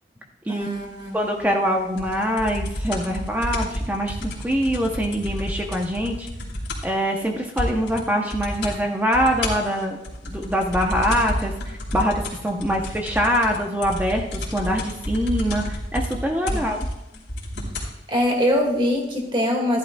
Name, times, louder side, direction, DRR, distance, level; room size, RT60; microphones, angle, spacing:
voice 1, 0.5-1.1 16.5-16.6 17.6-17.7 18.1-19.8, equal, 30° right, 1 dB, 1.9 m, -23 dB
voice 2, 1.1-6.3 6.8-10.0 10.2-11.5 11.9-16.9, equal, 10° right, 2 dB, 0.7 m, -24 dB
sound 1, 2.0-7.0 7.2-7.3 7.6-8.0 8.3-8.8 9.1-18.0 18.7-18.8, left 1 dB, 80° left, 2.9 m, -30 dB
14.0 x 11.0 x 2.3 m, 0.92 s
head